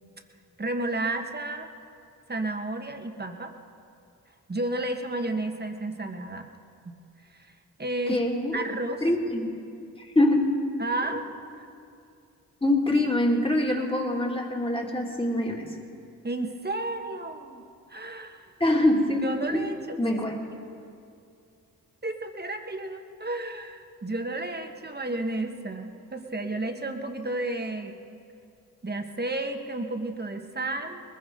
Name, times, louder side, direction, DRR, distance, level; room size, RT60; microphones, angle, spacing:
voice 1, 0.6-1.7 2.3-3.5 4.5-6.4 6.8-6.9 7.3-7.5 7.8-8.2 8.5-9.0 10.8-11.3 16.2-17.6 17.9-18.5 19.2-20.2 22.0-27.9 28.8-31.0, right 2 dB, 25° right, 5 dB, 1.5 m, -32 dB
voice 2, 8.1-8.7 9.0-9.6 10.0-10.5 12.6-15.8 18.6-19.7 20.0-20.4, left 1 dB, 15° left, 0 dB, 2.6 m, -24 dB
20.5 x 15.0 x 3.9 m, 2.5 s
supercardioid pair, 50°, 38 cm